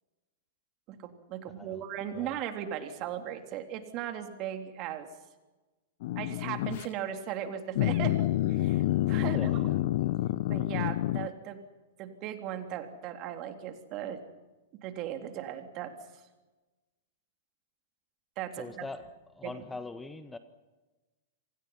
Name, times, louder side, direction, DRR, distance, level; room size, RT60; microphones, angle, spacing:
voice 1, 0.9-5.1 6.2-8.2 8.5-9.6 10.5-11.6 12.0-14.2 14.8-15.9 18.4-18.8 19.4-19.5, right 10 dB, 40° right, 6 dB, 3.5 m, -37 dB
voice 2, 1.5-1.8 2.1-2.4 9.2-9.8 18.6-20.4, left 3 dB, 10° left, 10 dB, 1.5 m, -42 dB
sound 1, 6.0-6.9 7.8-11.3, left 15 dB, 50° left, 0.8 m, -28 dB
28.0 x 26.5 x 5.8 m, 1.2 s
figure-of-eight pair, 105°, 0 cm